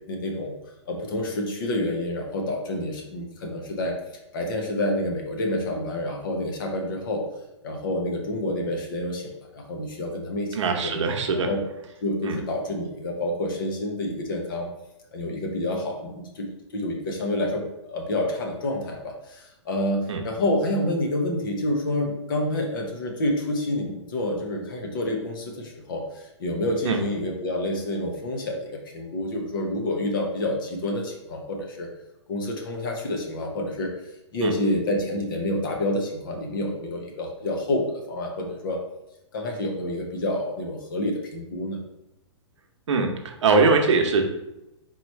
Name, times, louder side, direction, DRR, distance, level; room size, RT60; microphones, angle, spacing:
voice 1, 0.1-0.6 0.9-4.0 4.3-7.2 7.6-10.9 11.3-11.6 12.0-14.7 15.1-31.9 32.3-33.9 34.3-38.8 39.3-41.8, left 1 dB, 45° left, 1 dB, 0.9 m, -28 dB
voice 2, 10.5-11.5 12.2-12.4 20.1-20.2 26.8-27.0 34.4-34.5 42.9-44.2, right 4 dB, 70° right, 3 dB, 0.9 m, -22 dB
3.9 x 3.0 x 4.4 m, 0.91 s
hypercardioid pair, 170°, 16 cm